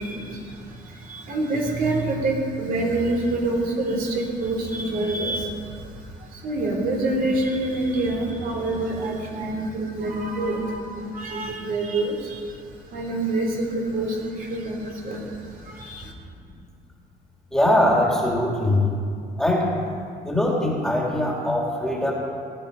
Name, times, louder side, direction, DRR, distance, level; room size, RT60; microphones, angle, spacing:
voice 1, 0.0-12.6 12.9-16.1, right 2 dB, 60° right, -1 dB, 3.4 m, -27 dB
voice 2, 17.5-18.9 19.4-19.7 20.2-22.1, left 1 dB, 5° left, -2 dB, 2.5 m, -21 dB
19.0 x 10.0 x 5.1 m, 2.3 s
cardioid pair, 110°, 17 cm